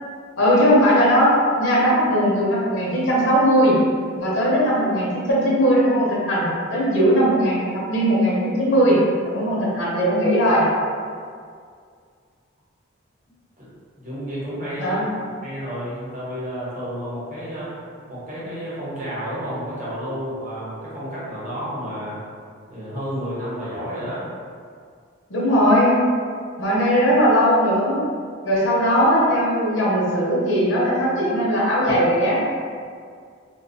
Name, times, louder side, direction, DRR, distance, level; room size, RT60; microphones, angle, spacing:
voice 1, 0.4-3.8 4.2-9.0 9.2-10.6 14.8-15.1 25.3-26.0 26.6-28.0 28.4-32.4, equal, 80° left, -6 dB, 0.6 m, -19 dB
voice 2, 14.0-15.1 15.4-17.7 18.1-22.2 22.7-24.3, equal, 40° right, -9 dB, 0.8 m, -31 dB
2.3 x 2.2 x 2.6 m, 2.1 s
head